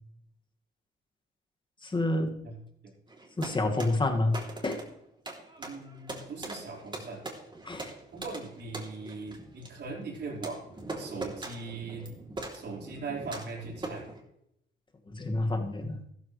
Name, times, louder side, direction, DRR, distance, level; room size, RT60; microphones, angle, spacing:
voice 1, 1.8-2.3 3.4-4.8 7.6-7.9 15.1-16.0, left 2 dB, 25° left, 3 dB, 2.2 m, -29 dB
sound 1, 3.1-14.2, right 2 dB, 25° right, 3.4 m, -42 dB
voice 2, 5.6-7.2 8.1-12.1 12.5-14.1, right 4 dB, 60° right, -2 dB, 5.2 m, -40 dB
14.0 x 13.5 x 3.4 m, 0.77 s
cardioid pair, 90°, 20 cm